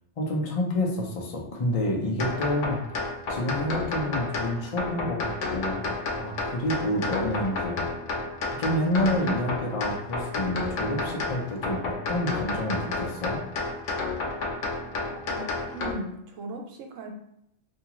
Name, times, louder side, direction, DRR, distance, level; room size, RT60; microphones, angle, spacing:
voice 1, 0.2-2.8 3.3-5.8 6.2-7.8 8.5-13.4, left 1 dB, 55° left, 0 dB, 0.4 m, -28 dB
sound 1, 2.2-15.9, left 3 dB, 85° left, 0.9 m, -31 dB
voice 2, 15.2-17.1, right 2 dB, 85° right, 3 dB, 0.9 m, -38 dB
2.7 x 2.4 x 2.9 m, 0.74 s
omnidirectional pair, 1.3 m